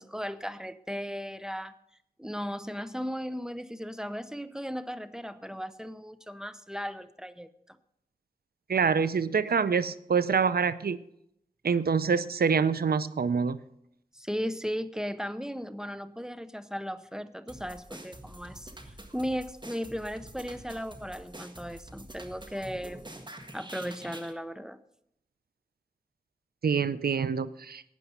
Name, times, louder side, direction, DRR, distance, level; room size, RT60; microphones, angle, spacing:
voice 1, 0.0-1.7 2.2-7.8 14.1-23.0 23.5-24.8, equal, 5° right, 13 dB, 0.8 m, -36 dB
voice 2, 8.7-11.0 11.6-13.6 26.6-27.8, right 6 dB, 85° right, 16 dB, 0.5 m, -26 dB
sound 1, 17.5-24.3, right 1 dB, 30° right, 1.6 m, -46 dB
12.5 x 9.0 x 5.6 m, 0.76 s
cardioid pair, 40°, 15 cm